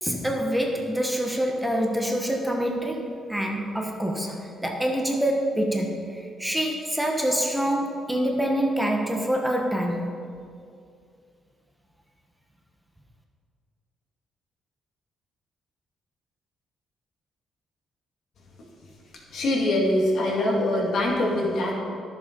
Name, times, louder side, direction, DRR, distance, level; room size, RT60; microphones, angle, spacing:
voice 1, 0.0-10.1, equal, 5° right, 1 dB, 1.2 m, -26 dB
voice 2, 19.3-21.7, left 1 dB, 65° left, -2 dB, 2.4 m, -23 dB
11.0 x 7.1 x 5.3 m, 2.3 s
cardioid pair, 90°, 0 cm